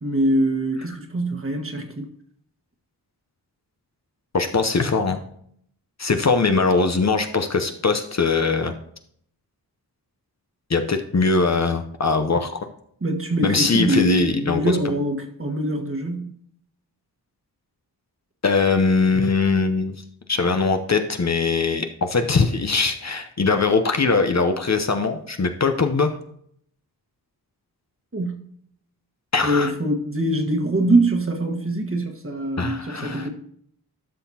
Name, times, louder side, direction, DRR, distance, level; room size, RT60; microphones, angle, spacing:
voice 1, 0.0-2.1 13.0-16.3 28.1-28.4 29.4-33.3, right 1 dB, 35° right, 3 dB, 1.4 m, -23 dB
voice 2, 4.3-5.2 6.0-8.7 10.7-12.5 13.4-14.8 18.4-20.0 20.3-26.1 29.3-29.7 32.6-33.3, left 4 dB, 45° left, 6 dB, 0.8 m, -21 dB
12.5 x 5.7 x 2.8 m, 0.66 s
cardioid pair, 45°, 39 cm